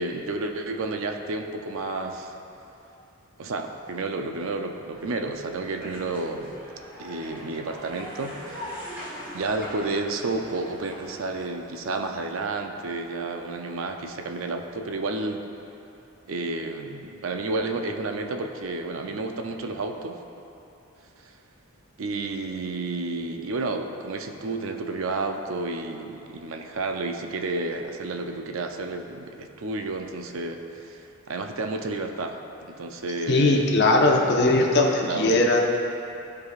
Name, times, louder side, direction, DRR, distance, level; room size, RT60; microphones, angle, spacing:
voice 1, 0.0-2.3 3.4-6.6 7.0-8.6 9.3-15.5 16.3-20.2 21.2-21.3 22.0-32.4 32.7-33.7 35.0-35.3, right 3 dB, 75° right, 5 dB, 0.5 m, -31 dB
sound 1, 4.9-11.4, equal, 10° right, 1.6 m, -41 dB
voice 2, 33.3-35.6, left 2 dB, 55° left, 1 dB, 0.8 m, -19 dB
13.0 x 4.8 x 2.4 m, 2.8 s
head